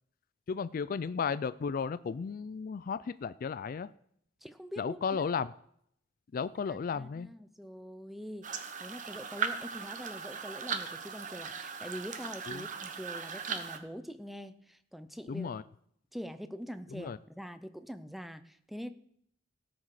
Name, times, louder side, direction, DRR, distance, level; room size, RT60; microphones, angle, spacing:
voice 1, 0.5-3.9 4.8-5.5 6.3-7.3 12.5-12.7 15.3-15.6 16.9-17.2, left 6 dB, 45° left, 15 dB, 0.3 m, -34 dB
voice 2, 4.4-5.2 6.7-15.5 16.1-18.9, equal, ahead, 11 dB, 0.6 m, -44 dB
sound 1, 8.4-13.8, right 6 dB, 40° right, 0.9 m, -38 dB
17.5 x 6.0 x 4.9 m, 0.69 s
head